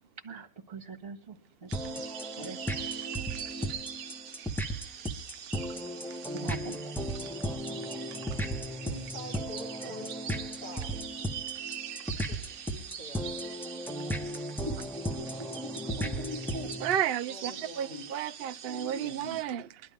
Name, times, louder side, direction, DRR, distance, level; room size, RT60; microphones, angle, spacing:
voice 1, 0.2-2.0 2.4-2.6 6.3-6.8 14.6-14.7 15.1-15.6 16.0-16.7 17.6-18.1 18.7-19.4, right 1 dB, 30° right, 1.8 m, -42 dB
sound 1, 1.7-16.9, equal, ahead, 1.1 m, -36 dB
sound 2, 1.7-19.4, right 9 dB, 55° right, 1.2 m, -43 dB
voice 2, 8.8-11.2 12.1-13.3 17.3-18.0, left 1 dB, 65° left, 4.9 m, -46 dB
voice 3, 16.8-19.8, right 10 dB, 85° right, 0.5 m, -32 dB
21.5 x 11.5 x 3.5 m
omnidirectional pair, 2.0 m